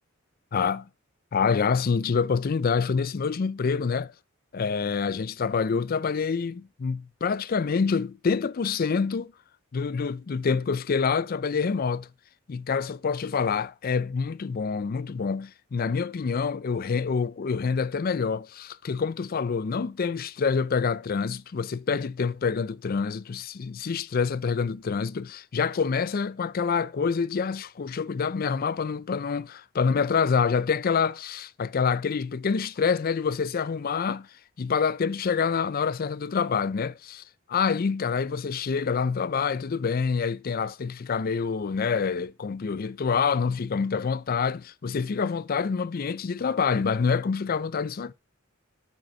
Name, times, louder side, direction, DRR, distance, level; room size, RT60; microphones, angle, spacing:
voice 1, 0.5-0.8 1.3-4.1 4.5-9.3 9.7-12.1 12.5-34.3 34.6-37.2 37.5-48.1, left 5 dB, 45° left, 0.4 m, -26 dB
7.4 x 5.2 x 6.3 m
head